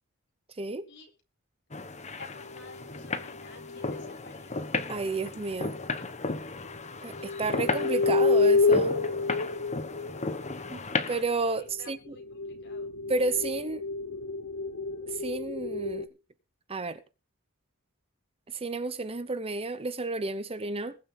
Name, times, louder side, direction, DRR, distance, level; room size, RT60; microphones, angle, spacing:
sound 1, 1.7-11.2, left 3 dB, 30° left, 1.2 m, -35 dB
voice 1, 2.1-4.7 11.6-12.9, left 4 dB, 55° left, 4.3 m, -52 dB
sound 2, 2.4-4.1 5.7-5.8 7.1-10.8 11.7-16.1, left 4 dB, 80° left, 1.0 m, -29 dB
voice 2, 4.9-5.7 7.0-8.9 10.7-10.8 11.1-12.1 13.1-13.8 15.1-16.0 16.7-17.0 18.5-21.0, right 3 dB, 25° right, 0.8 m, -31 dB
21.0 x 7.4 x 3.8 m
head